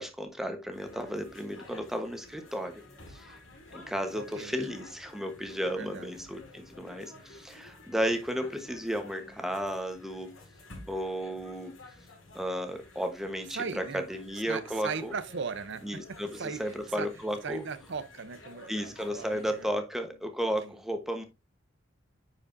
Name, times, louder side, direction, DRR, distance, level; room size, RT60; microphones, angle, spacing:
voice 1, 0.0-2.8 3.1-3.4 3.7-10.3 10.9-11.7 12.3-15.1 15.8-17.6 18.7-21.2, equal, ahead, 1.2 m, -34 dB
sound 1, 0.7-19.6, left 2 dB, 80° left, 3.9 m, -52 dB
voice 2, 4.1-4.7 5.6-6.3 13.5-14.1 14.5-17.1 17.4-19.8 20.6-20.7, right 5 dB, 65° right, 0.8 m, -38 dB
9.8 x 5.0 x 2.6 m
head